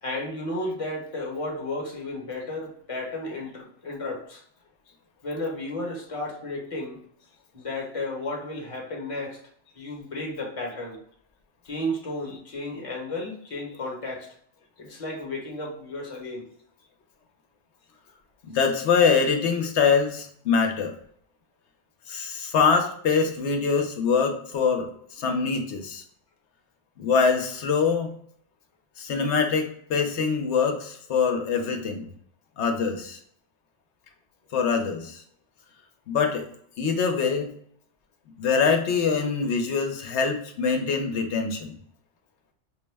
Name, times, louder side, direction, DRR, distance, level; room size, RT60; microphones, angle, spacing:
voice 1, 0.0-4.4 5.2-7.0 7.5-9.4 9.7-11.0 11.6-14.3 14.8-16.4, left 1 dB, 30° left, -1 dB, 1.0 m, -33 dB
voice 2, 18.4-20.9 22.1-24.9 25.2-26.0 27.0-28.1 29.0-32.1 32.6-33.2 34.5-35.2 36.1-36.5 36.8-37.5 38.4-41.7, left 5 dB, 70° left, 5 dB, 0.9 m, -24 dB
5.0 x 2.1 x 3.3 m, 0.63 s
omnidirectional pair, 1.2 m